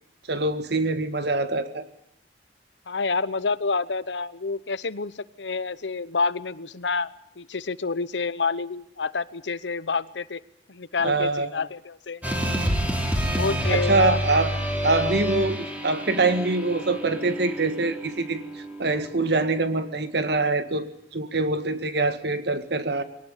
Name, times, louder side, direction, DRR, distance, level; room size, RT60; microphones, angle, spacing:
voice 1, 0.3-1.9 11.0-11.5 13.7-14.5 14.8-23.0, right 3 dB, 65° right, 10 dB, 1.9 m, -24 dB
voice 2, 2.9-10.4 10.7-12.2 13.3-14.2, left 4 dB, 80° left, 17 dB, 1.0 m, -28 dB
sound 1, 12.2-20.6, equal, 10° right, 3.5 m, -29 dB
23.0 x 18.0 x 9.9 m, 0.76 s
head